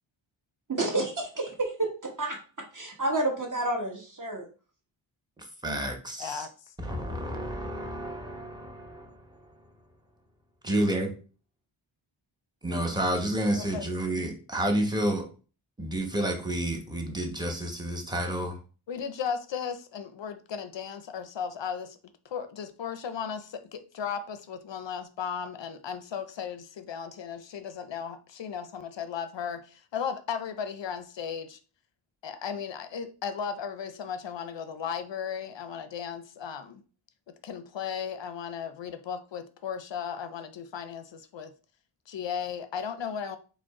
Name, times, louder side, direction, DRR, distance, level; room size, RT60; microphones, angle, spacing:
voice 1, 0.7-4.5, right 2 dB, 40° right, 1.3 m, -30 dB
voice 2, 5.4-6.5 6.8-9.4 10.6-11.1 12.6-15.3 15.8-18.6, right 1 dB, 10° right, 0.9 m, -30 dB
voice 3, 18.9-22.0 22.3-31.6 32.2-36.8 37.4-41.5 42.1-43.4, left 7 dB, 60° left, 0.5 m, -36 dB
4.9 x 2.1 x 4.7 m
wide cardioid pair, 135°, 49 cm